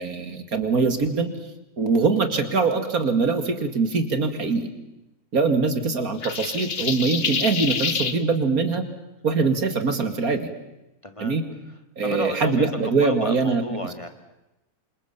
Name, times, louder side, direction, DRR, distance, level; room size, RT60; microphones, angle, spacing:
voice 1, 0.0-1.3 1.8-4.7 5.3-8.8 9.2-10.5 11.2-11.4 12.0-13.6, right 4 dB, 70° right, 8 dB, 2.7 m, -23 dB
sound 1, 6.2-8.2, left 5 dB, 45° left, 1.4 m, -27 dB
voice 2, 11.0-11.4 12.0-14.1, left 1 dB, 20° left, 7 dB, 1.8 m, -32 dB
28.0 x 27.0 x 7.4 m, 0.94 s
omnidirectional pair, 1.6 m